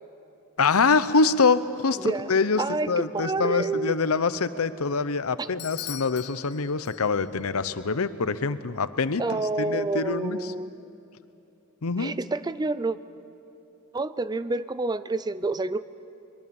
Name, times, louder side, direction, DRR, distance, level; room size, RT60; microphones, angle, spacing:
voice 1, 0.6-2.0 2.3-10.4 11.8-12.1, left 4 dB, 85° left, 14 dB, 0.8 m, -25 dB
voice 2, 2.0-2.3 2.6-3.9 5.4-5.5 9.2-10.8 12.0-13.0 13.9-15.8, right 3 dB, 20° right, 15 dB, 0.4 m, -28 dB
Bell / Doorbell, 5.6-7.4, left 14 dB, 50° left, 0.6 m, -41 dB
23.0 x 22.5 x 7.1 m, 2.8 s
head